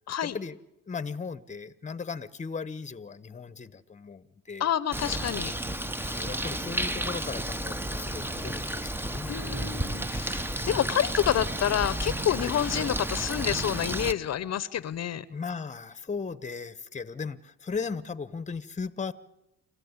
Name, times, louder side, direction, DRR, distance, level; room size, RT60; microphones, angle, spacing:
voice 1, 0.2-0.6 0.9-4.7 6.0-9.4 10.6-10.8 12.4-12.6 15.3-19.1, left 5 dB, 25° left, 16 dB, 1.0 m, -37 dB
voice 2, 4.6-5.5 9.3-15.2, left 10 dB, 60° left, 17 dB, 0.9 m, -28 dB
Bird, 4.9-14.1, right 1 dB, 5° right, 0.9 m, -32 dB
28.0 x 14.5 x 9.7 m, 0.91 s
cardioid pair, 90°, 30 cm